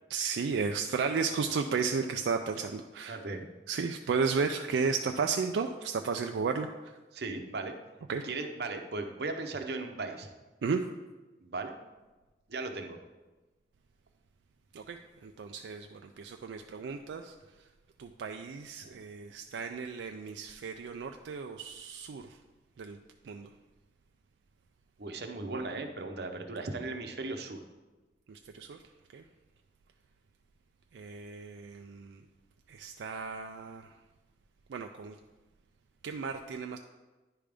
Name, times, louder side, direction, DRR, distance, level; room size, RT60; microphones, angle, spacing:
voice 1, 0.1-3.2 3.7-7.0 8.1-8.3 10.6-10.8 14.7-17.3 18.0-22.4 22.8-23.0 23.2-23.5 28.3-28.8 29.1-29.2 30.9-32.2 32.7-33.9 34.7-35.2 36.0-36.8, right 5 dB, 90° right, 5 dB, 0.4 m, -34 dB
voice 2, 3.1-3.5 7.1-7.7 8.2-10.3 11.4-11.8 12.5-13.0 18.8-18.9 25.0-27.6, right 3 dB, 65° right, 5 dB, 0.7 m, -37 dB
10.0 x 3.5 x 5.1 m, 1.2 s
head